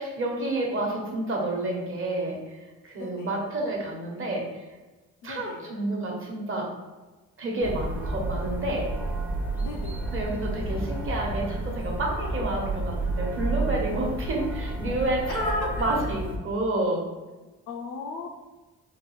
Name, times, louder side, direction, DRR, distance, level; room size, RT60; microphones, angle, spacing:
voice 1, 0.0-2.4 2.8-4.5 5.2-6.7 7.4-8.9 10.1-17.0, right 1 dB, 45° right, -1 dB, 1.0 m, -29 dB
voice 2, 3.0-3.4 5.2-5.7 9.6-10.3 15.3-15.9 17.7-18.3, left 4 dB, 75° left, 1 dB, 0.5 m, -38 dB
sound 1, 7.6-16.4, right 2 dB, 5° right, 0.5 m, -31 dB
3.8 x 2.3 x 3.1 m, 1.2 s
cardioid pair, 90°, 30 cm